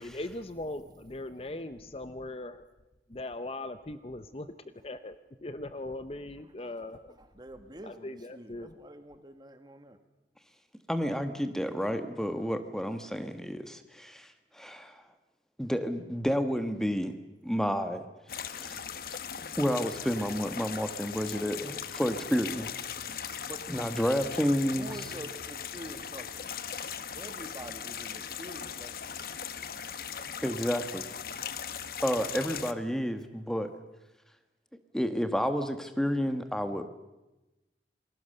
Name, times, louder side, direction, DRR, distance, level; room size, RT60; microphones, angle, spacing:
voice 1, 0.0-2.6 3.1-4.5 4.8-5.2 5.4-7.0 7.9-8.8, left 2 dB, 35° left, 12 dB, 0.7 m, -39 dB
voice 2, 6.4-10.0 23.5-23.6 24.8-26.5 27.1-29.2, right 1 dB, 25° right, 8 dB, 1.7 m, -46 dB
voice 3, 10.9-15.0 15.6-17.1 17.4-18.0 18.4-18.8 19.6-22.7 23.7-24.9 30.4-31.0 32.0-33.7 34.9-36.9, equal, 5° left, 8 dB, 1.3 m, -30 dB
sound 1, 18.3-32.7, left 7 dB, 55° left, 1.0 m, -39 dB
28.0 x 20.5 x 6.7 m, 1.0 s
head